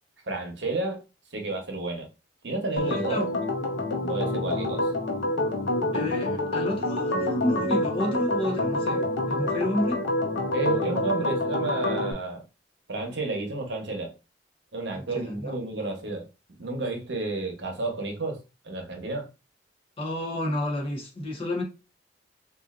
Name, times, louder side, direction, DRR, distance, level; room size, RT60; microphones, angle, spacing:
voice 1, 0.3-1.0 1.3-2.1 2.4-3.3 4.1-4.9 10.5-12.4 12.9-14.1 14.7-16.3 16.6-18.4 18.6-19.3, right 3 dB, 65° right, 0.9 m, -31 dB
Organ, 2.8-12.1, left 1 dB, 70° left, 0.8 m, -27 dB
voice 2, 2.9-3.3 5.9-10.0 14.9-15.5 20.0-21.6, left 1 dB, 30° left, 0.9 m, -30 dB
4.2 x 2.5 x 2.4 m
head